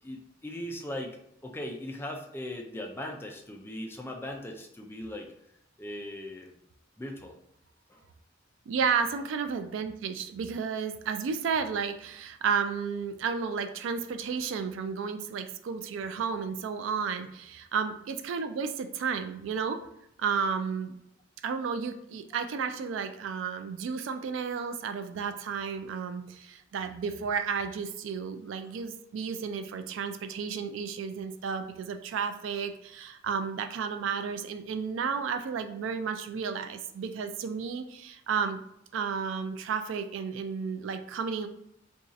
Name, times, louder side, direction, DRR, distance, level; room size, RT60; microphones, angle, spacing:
voice 1, 0.0-5.3 5.8-6.5 7.0-7.3 7.9-8.1 25.1-25.2 28.6-28.7, left 1 dB, 10° left, 1 dB, 0.4 m, -39 dB
voice 2, 8.7-19.8 20.2-21.0 21.4-38.6 38.9-41.5, right 6 dB, 70° right, 9 dB, 0.3 m, -32 dB
2.6 x 2.4 x 3.9 m, 0.77 s
head